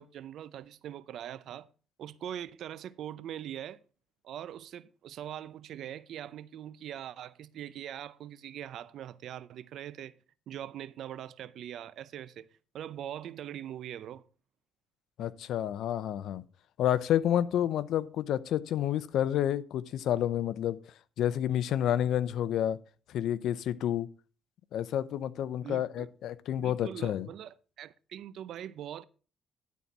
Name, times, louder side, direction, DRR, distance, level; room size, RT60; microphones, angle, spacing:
voice 1, 0.0-1.7 2.0-3.8 4.2-10.1 10.5-12.5 12.7-14.2 25.6-26.1 26.6-29.0, right 10 dB, 75° right, 0.6 m, -42 dB
voice 2, 15.2-16.4 16.8-20.8 21.2-22.8 23.1-24.1 24.7-27.3, left 11 dB, 80° left, 0.6 m, -29 dB
12.0 x 4.2 x 6.0 m
cardioid pair, 90°, 0 cm